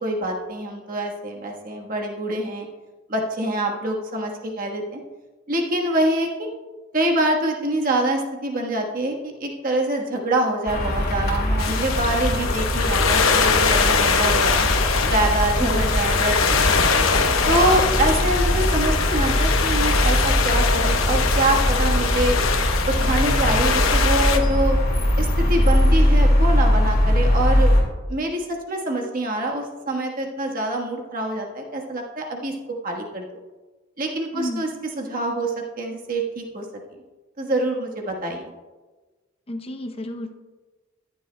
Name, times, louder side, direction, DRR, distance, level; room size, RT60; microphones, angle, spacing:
voice 1, 0.0-2.7 3.1-5.0 5.5-6.5 6.9-14.6 15.0-16.6 17.5-22.4 23.0-24.8 25.2-27.7 28.1-32.5 32.8-33.2 34.0-34.7 35.0-36.6 37.4-38.5, right 1 dB, 40° right, 0 dB, 1.3 m, -25 dB
sound 1, 10.7-27.8, equal, 50° left, 2.3 m, -21 dB
sound 2, 11.6-24.4, left 5 dB, 75° left, 0.9 m, -22 dB
voice 2, 15.6-15.9 34.3-34.7 39.5-40.3, left 1 dB, 25° left, 5 dB, 0.6 m, -31 dB
14.0 x 10.5 x 2.2 m, 1.2 s
head